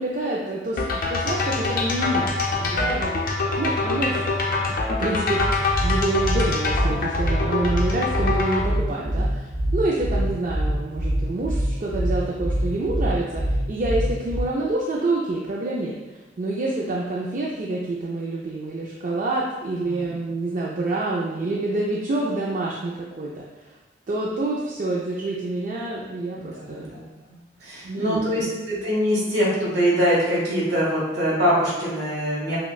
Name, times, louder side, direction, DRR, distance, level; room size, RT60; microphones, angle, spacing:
voice 1, 0.0-3.3 3.6-4.3 4.7-5.4 5.8-15.9 16.4-23.3 24.1-26.9 27.8-28.5, right 2 dB, 45° right, -4 dB, 0.4 m, -27 dB
sound 1, 0.8-8.6, left 3 dB, 50° left, 0.5 m, -25 dB
voice 2, 2.7-3.0 19.8-20.1 26.3-27.0 27.3-32.6, equal, 65° right, -6 dB, 1.5 m, -24 dB
sound 2, 5.4-14.4, equal, 85° right, 0.8 m, -24 dB
5.6 x 2.1 x 2.3 m, 1.2 s
head